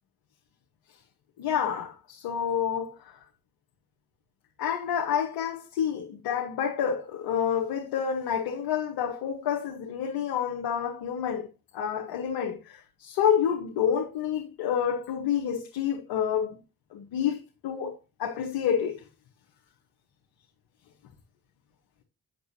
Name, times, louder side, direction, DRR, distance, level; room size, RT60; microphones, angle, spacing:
voice 1, 1.4-3.2 4.6-11.5 11.7-16.6 16.9-19.0, left 8 dB, 80° left, 1.3 m, -28 dB
7.8 x 6.9 x 2.7 m
hypercardioid pair, 40°, 39 cm